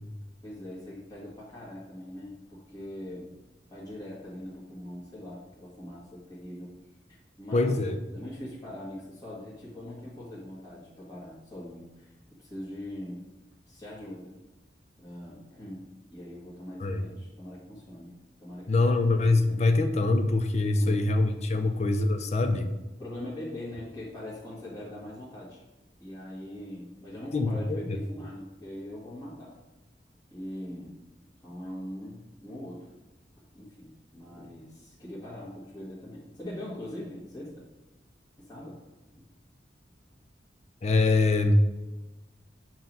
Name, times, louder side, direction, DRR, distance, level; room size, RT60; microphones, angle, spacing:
voice 1, 0.4-3.3 3.7-6.7 7.4-7.7 8.1-12.1 12.4-13.2 13.7-14.4 15.0-18.1 18.4-18.7 19.4-19.6 20.7-21.0 21.5-21.7 23.0-25.6 26.0-29.5 30.3-31.0 31.4-32.9 33.5-37.5 38.4-38.8, left 1 dB, 20° left, -9 dB, 1.5 m, -41 dB
voice 2, 7.5-8.0 16.8-17.0 18.7-22.7 27.3-28.0 40.8-41.6, left 2 dB, 40° left, 7 dB, 0.5 m, -24 dB
7.7 x 3.0 x 5.2 m, 1.1 s
head